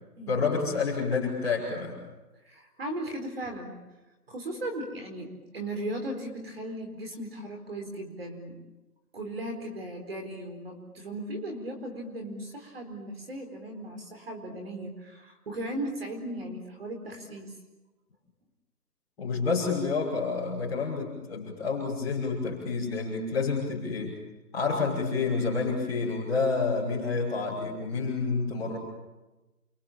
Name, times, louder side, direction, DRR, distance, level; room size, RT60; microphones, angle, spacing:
voice 1, 0.3-2.0 19.2-24.1 24.5-28.8, left 4 dB, 5° left, -9 dB, 6.0 m, -29 dB
voice 2, 2.3-3.7 4.3-8.6 9.1-17.5 20.8-20.9, right 1 dB, 40° right, 4 dB, 4.4 m, -37 dB
30.0 x 24.5 x 7.4 m, 1.1 s
hypercardioid pair, 180°, 47 cm